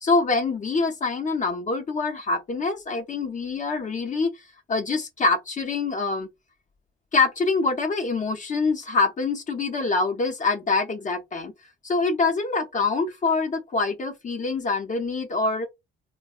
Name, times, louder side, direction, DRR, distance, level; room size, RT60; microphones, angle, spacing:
voice 1, 0.0-4.3 4.7-6.3 7.1-11.5 11.8-15.7, left 3 dB, 40° left, 0.6 m, -25 dB
2.7 x 2.1 x 2.4 m
cardioid pair, 90°, 20 cm